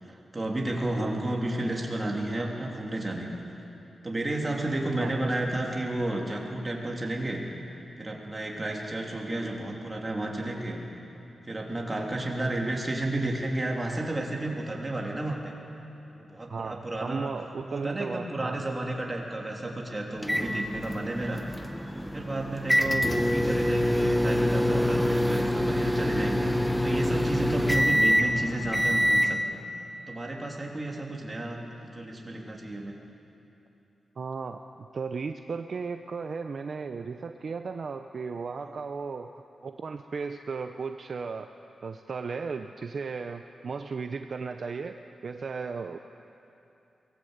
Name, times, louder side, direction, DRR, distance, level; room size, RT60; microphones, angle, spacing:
voice 1, 0.0-3.4 4.0-7.4 8.0-10.8 11.4-15.5 16.1-17.3 17.6-21.4 22.1-26.5 26.8-29.6 30.1-31.6 31.8-32.9, right 1 dB, 20° right, -1 dB, 3.1 m, -32 dB
voice 2, 16.5-18.6 34.2-41.5 41.8-45.0 45.2-46.0, right 5 dB, 50° right, 7 dB, 0.7 m, -35 dB
sound 1, 20.2-29.3, equal, ahead, 1.0 m, -25 dB
23.5 x 18.5 x 8.1 m, 2.8 s
wide cardioid pair, 130°, 0 cm